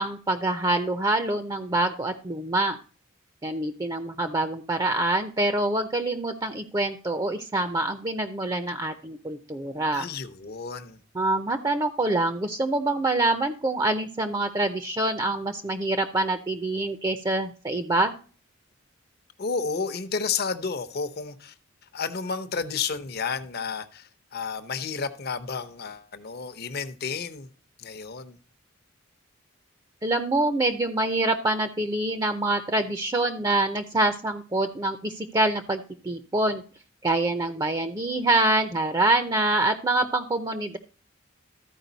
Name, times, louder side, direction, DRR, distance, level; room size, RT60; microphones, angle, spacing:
voice 1, 0.0-2.8 3.4-10.1 11.1-18.1 30.0-36.6 37.0-40.8, right 2 dB, 20° right, 0.6 m, -25 dB
voice 2, 9.9-11.0 19.4-21.5 21.9-27.5 27.8-28.4, left 5 dB, 50° left, 0.8 m, -31 dB
13.5 x 4.9 x 4.0 m
head